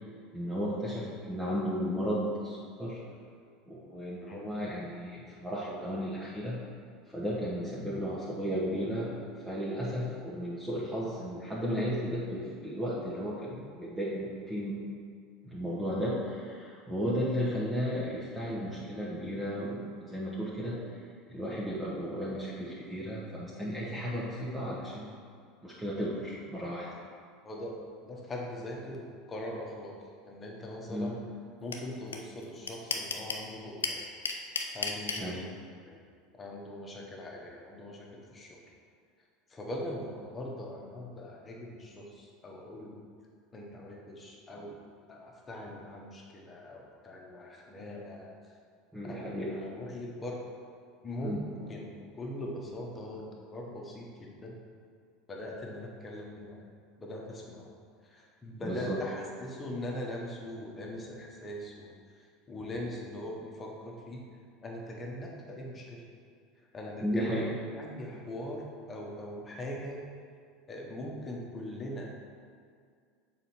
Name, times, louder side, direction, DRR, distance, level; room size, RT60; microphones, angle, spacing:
voice 1, 0.3-3.0 3.7-6.6 7.1-9.2 9.4-14.8 15.4-21.0 21.3-25.1 25.6-26.9 30.9-31.1 35.2-35.4 48.9-49.6 51.2-51.4 58.6-59.0 67.0-67.4, equal, 10° right, -7 dB, 1.3 m, -34 dB
voice 2, 27.4-30.0 30.2-31.2 31.6-34.0 34.7-35.5 35.8-36.0 36.3-38.7 39.5-43.0 43.5-48.3 49.0-50.4 51.0-51.4 51.7-53.2 53.5-54.5 55.3-56.7 57.0-57.7 58.0-64.2 64.6-66.0 66.7-67.4 67.8-70.0 70.7-72.1, left 1 dB, 25° left, -1 dB, 1.3 m, -41 dB
sound 1, 31.7-31.8 32.1-32.2 32.4-33.4 33.8-35.2, left 5 dB, 80° left, 0.5 m, -32 dB
6.9 x 4.2 x 4.5 m, 2.1 s
figure-of-eight pair, 75°, 0 cm